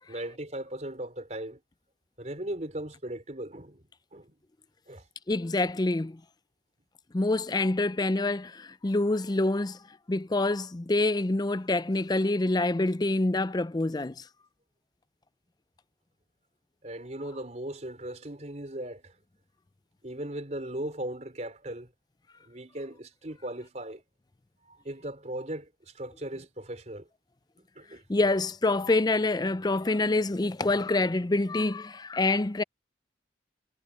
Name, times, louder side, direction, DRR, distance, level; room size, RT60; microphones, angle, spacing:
voice 1, 0.1-1.6 2.2-3.8 4.1-4.3 4.9-5.0 16.8-19.1 20.0-21.9 22.5-24.0 24.7-25.7 25.9-27.1 27.8-28.0, right 1 dB, 40° right, 4.5 m, -38 dB
voice 2, 5.3-6.2 7.1-9.8 10.1-14.2 28.1-32.6, left 2 dB, 25° left, 0.5 m, -26 dB
head